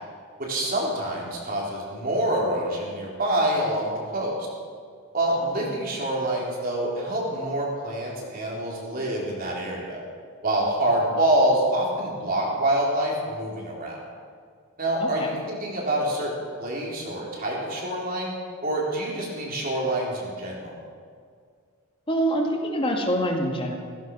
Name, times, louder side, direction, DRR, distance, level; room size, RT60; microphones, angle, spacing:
voice 1, 0.4-4.3 5.1-10.0 10.4-14.0 14.8-16.3 16.6-18.3 18.6-20.7, right 1 dB, 40° right, -3 dB, 4.0 m, -26 dB
voice 2, 15.0-15.3 22.1-23.7, equal, 25° left, 1 dB, 2.1 m, -26 dB
16.5 x 15.5 x 5.6 m, 2.1 s
head